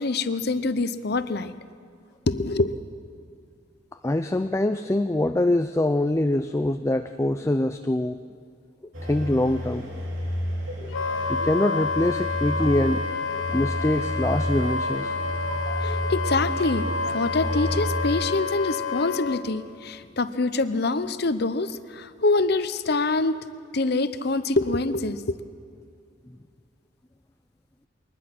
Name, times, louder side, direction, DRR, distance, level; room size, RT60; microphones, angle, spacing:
voice 1, 0.0-1.5 2.3-2.8 15.8-23.4 23.7-25.3, left 3 dB, 55° left, 12 dB, 0.8 m, -25 dB
voice 2, 4.0-8.2 9.0-9.9 11.3-13.0 13.5-15.1, left 1 dB, 15° left, 8 dB, 0.4 m, -24 dB
sound 1, 8.9-18.2, equal, 85° right, 3.2 m, -31 dB
Wind instrument woodwind instrument, 10.9-19.4, left 4 dB, 85° left, 1.2 m, -29 dB
22.5 x 20.0 x 6.1 m, 2.3 s
head